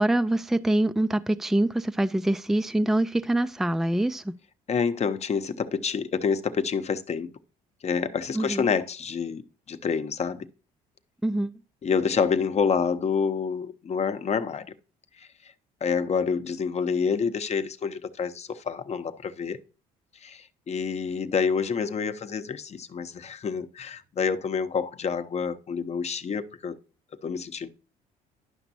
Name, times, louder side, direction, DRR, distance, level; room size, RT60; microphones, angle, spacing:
voice 1, 0.0-4.4 8.3-8.7 11.2-11.5, right 1 dB, ahead, 0.4 m, -24 dB
voice 2, 4.7-7.3 7.8-9.4 9.7-10.5 11.8-14.7 15.2-15.5 15.8-19.6 20.2-26.8 27.2-27.7, left 6 dB, 40° left, 0.8 m, -28 dB
11.0 x 5.9 x 2.7 m
supercardioid pair, 70°, 16 cm